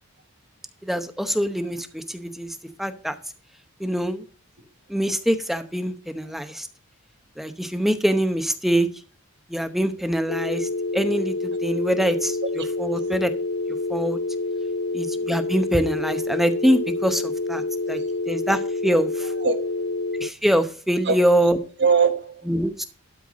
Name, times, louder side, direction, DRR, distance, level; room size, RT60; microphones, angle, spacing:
voice 1, 0.8-3.1 3.8-4.2 4.9-6.7 7.4-8.9 9.5-12.4 12.8-13.3 13.9-14.2 14.9-17.6 17.9-18.0 18.3-19.3 20.2-21.6 22.5-22.8, equal, ahead, 0.8 m, -24 dB
sound 1, 10.3-20.3, left 3 dB, 50° left, 0.4 m, -27 dB
voice 2, 12.8-13.1 14.0-14.1 14.9-15.1 17.9-18.1 19.4-19.8 21.0-21.5 21.8-22.5, right 5 dB, 50° right, 1.1 m, -24 dB
12.5 x 4.5 x 6.2 m
head